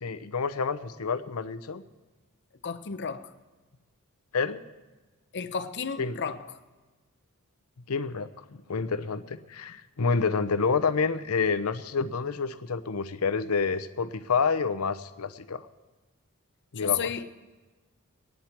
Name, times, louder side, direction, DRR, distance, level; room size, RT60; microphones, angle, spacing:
voice 1, 0.0-1.8 4.3-4.6 6.0-6.2 7.9-15.7 16.7-17.1, left 5 dB, 90° left, 0.7 m, -28 dB
voice 2, 2.6-3.3 5.3-6.6 16.8-17.3, left 7 dB, 55° left, 0.8 m, -32 dB
23.0 x 9.6 x 4.5 m
head